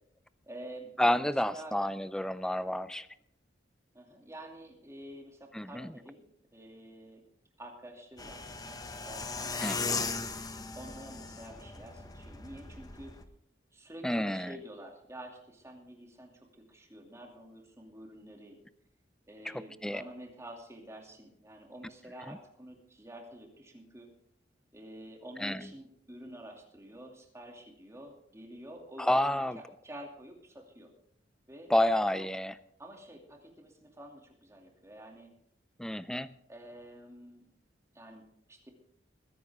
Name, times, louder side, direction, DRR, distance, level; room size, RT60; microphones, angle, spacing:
voice 1, 0.4-1.8 3.9-6.3 6.5-7.2 7.6-8.5 9.0-10.0 10.7-13.1 13.7-18.6 19.3-24.1 24.7-30.9 31.5-31.7 32.8-35.3 36.5-37.4 37.9-38.7, right 1 dB, 15° right, 1 dB, 2.6 m, -49 dB
voice 2, 1.0-3.1 5.5-5.9 9.6-10.0 14.0-14.6 19.4-19.5 19.8-20.0 22.3-22.4 25.4-25.7 29.0-29.6 31.7-32.5 35.8-36.3, left 1 dB, 5° left, 14 dB, 0.5 m, -30 dB
sound 1, 8.2-13.2, left 4 dB, 20° left, 0.9 m, -38 dB
21.5 x 10.5 x 3.6 m, 0.73 s
head